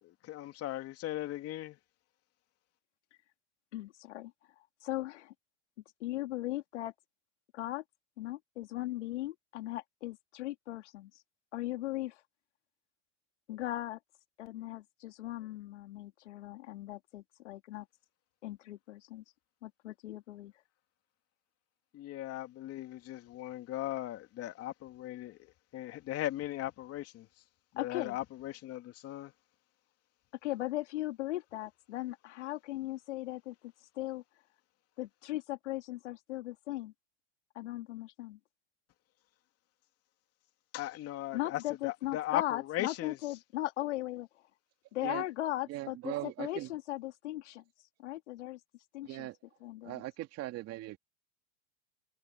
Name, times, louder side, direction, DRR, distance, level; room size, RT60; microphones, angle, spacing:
voice 1, 0.0-1.8 21.9-27.3 27.7-29.3 40.7-43.2, left 14 dB, 45° left, 2.7 m, -38 dB
voice 2, 3.7-4.3 4.8-5.3 6.0-6.9 7.5-7.8 8.2-11.1 11.5-12.2 13.5-14.0 14.4-17.9 18.4-19.2 19.6-20.5 27.8-28.2 30.4-34.2 35.0-36.9 37.5-38.4 41.3-44.3 44.9-47.6 48.0-48.6 48.9-49.3 49.6-50.0, left 15 dB, 80° left, 3.0 m, -38 dB
voice 3, 45.7-46.7 49.0-49.4 49.8-51.0, right 16 dB, 45° right, 2.2 m, -39 dB
hypercardioid pair, 110°, 35 cm